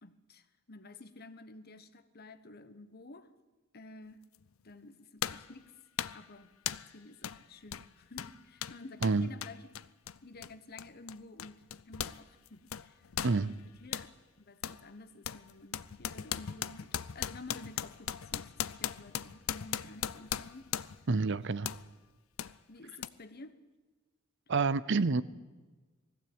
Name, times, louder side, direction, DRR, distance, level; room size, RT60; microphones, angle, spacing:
voice 1, 0.0-3.3 3.7-4.2 4.6-5.7 6.1-6.5 6.9-9.8 10.2-13.0 13.3-13.5 13.8-14.1 14.5-20.7 22.7-23.5, left 2 dB, 50° left, 11 dB, 1.3 m, -51 dB
sound 1, 4.3-4.5 5.2-5.5 6.0-6.3 6.7-6.9 7.2-7.4 7.7-12.2 12.5-14.1 14.6-14.8 15.2-21.1 21.6-21.8 22.4-22.5 23.0-23.1, left 9 dB, 90° left, 0.6 m, -38 dB
voice 2, 13.2-13.5 21.1-21.7 24.5-25.2, right 4 dB, 60° right, 17 dB, 0.7 m, -28 dB
20.0 x 15.5 x 8.8 m, 1.3 s
head